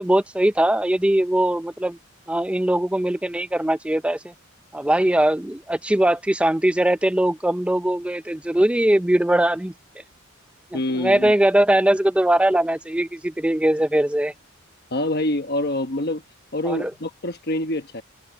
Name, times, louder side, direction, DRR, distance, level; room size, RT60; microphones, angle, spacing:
voice 1, 0.0-2.0 2.3-4.3 4.7-9.7 10.7-14.3 16.6-16.9, right 1 dB, 5° right, 0.4 m, -21 dB
voice 2, 10.7-11.3 14.9-16.2 16.5-18.0, left 1 dB, 50° left, 1.2 m, -26 dB
head